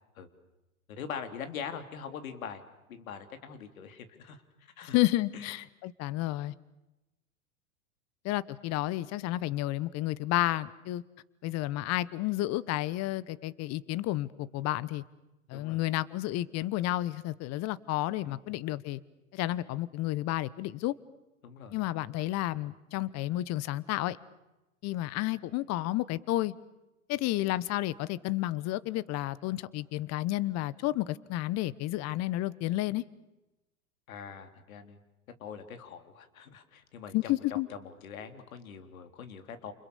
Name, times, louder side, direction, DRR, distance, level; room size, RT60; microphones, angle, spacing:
voice 1, 0.9-2.6 2.9-5.0 5.3-5.5 15.5-15.8 18.2-18.6 21.4-21.8 34.1-35.0 35.4-39.7, left 7 dB, 70° left, 8 dB, 3.6 m, -43 dB
voice 2, 4.9-6.5 8.2-11.0 11.4-15.0 15.5-19.0 19.3-20.9 21.7-24.2 24.8-26.5 27.1-33.0 37.1-37.7, left 16 dB, 35° left, 19 dB, 1.2 m, -31 dB
29.5 x 29.0 x 7.0 m, 0.99 s
hypercardioid pair, 100°, 43 cm